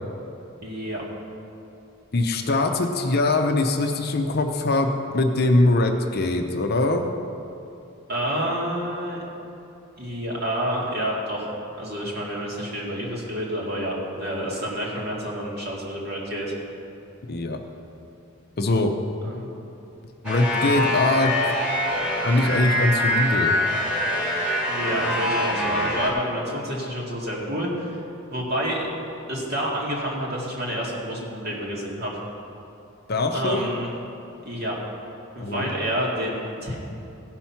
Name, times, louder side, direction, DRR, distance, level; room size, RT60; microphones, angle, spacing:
voice 1, 0.6-1.0 8.1-9.2 10.0-11.5 11.8-16.5 19.2-19.5 24.7-28.0 28.3-28.9 29.3-32.1 33.3-33.9 34.4-34.8 35.4-36.7, equal, 45° right, -4 dB, 2.2 m, -28 dB
voice 2, 2.1-7.1 17.3-17.6 18.6-18.9 20.2-21.5 22.2-23.5 33.1-33.7 35.4-35.7, left 2 dB, 45° left, 4 dB, 0.7 m, -22 dB
sound 1, 20.2-26.1, left 1 dB, 5° right, 1.8 m, -24 dB
16.0 x 6.0 x 5.8 m, 2.7 s
head